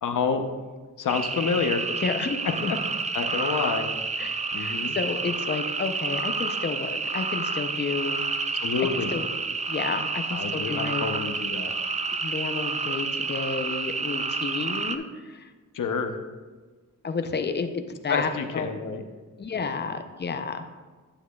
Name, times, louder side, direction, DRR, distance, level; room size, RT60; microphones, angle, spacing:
voice 1, 0.0-0.4 1.0-1.8 2.7-2.8 3.1-3.9 4.5-5.0 8.6-9.1 10.3-11.7 15.7-16.2 18.1-19.0 19.5-19.7, left 5 dB, 70° left, 6 dB, 0.7 m, -28 dB
sound 1, 1.1-15.0, right 4 dB, 25° right, 0.4 m, -29 dB
voice 2, 2.0-2.7 4.2-8.2 9.1-9.3 9.7-11.0 12.2-15.5 17.0-18.7 19.4-20.7, left 4 dB, 35° left, 7 dB, 0.6 m, -31 dB
9.8 x 8.2 x 2.3 m, 1.4 s
wide cardioid pair, 105°, 32 cm